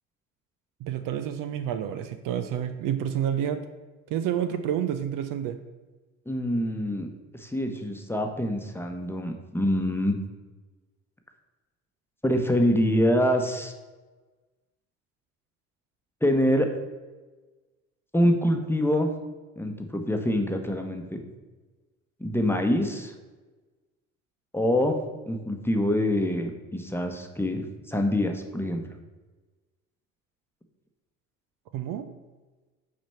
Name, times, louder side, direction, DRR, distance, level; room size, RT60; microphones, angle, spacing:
voice 1, 0.8-3.6 4.1-5.6 31.7-32.1, right 9 dB, 55° right, 9 dB, 0.6 m, -29 dB
voice 2, 6.3-10.2 12.2-13.7 16.2-16.7 18.1-19.1 19.6-21.2 22.2-23.1 24.5-25.0 25.3-28.8, equal, 5° left, 4 dB, 1.0 m, -25 dB
6.1 x 4.2 x 5.7 m, 1.3 s
hypercardioid pair, 55°, 40 cm